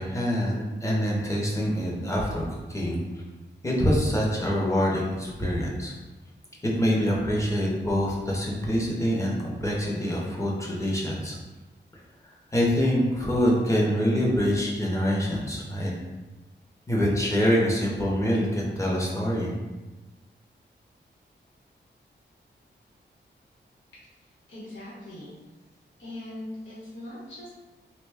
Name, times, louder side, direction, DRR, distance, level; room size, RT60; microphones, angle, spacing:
voice 1, 0.0-2.4 2.7-3.0 3.6-5.9 6.6-11.4 12.2-15.9 16.9-19.5, equal, 15° left, -3 dB, 0.7 m, -25 dB
voice 2, 24.2-25.3 26.0-27.6, left 1 dB, 85° left, -8 dB, 1.1 m, -41 dB
3.3 x 2.2 x 3.4 m, 1.2 s
wide cardioid pair, 165°, 19 cm